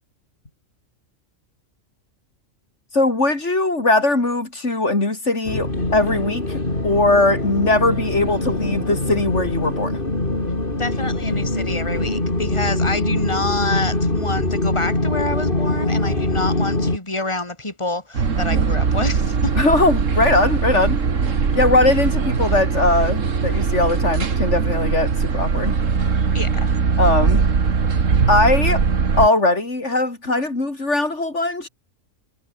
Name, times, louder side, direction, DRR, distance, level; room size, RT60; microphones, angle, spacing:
voice 1, 2.9-10.0 19.5-21.0 21.5-25.8 27.0-27.4 28.3-28.8 29.2-31.7, left 2 dB, 60° left, 4.3 m, -20 dB
sound 1, 5.5-17.0, left 2 dB, 40° left, 4.5 m, -23 dB
voice 2, 10.8-19.5 26.3-26.7, left 2 dB, 20° left, 4.0 m, -27 dB
sound 2, 18.1-29.3, right 5 dB, 75° right, 2.2 m, -20 dB
omnidirectional pair, 1.3 m